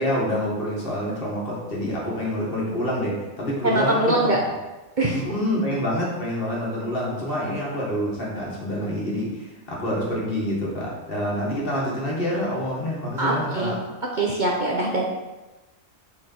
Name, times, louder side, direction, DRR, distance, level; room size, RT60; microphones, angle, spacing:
voice 1, 0.0-4.3 5.1-13.8, equal, 45° left, -5 dB, 1.9 m, -27 dB
voice 2, 3.6-4.4 5.0-5.3 13.2-13.8 14.2-15.0, right 2 dB, 45° right, -2 dB, 0.8 m, -22 dB
6.6 x 4.3 x 4.5 m, 1.1 s
omnidirectional pair, 1.3 m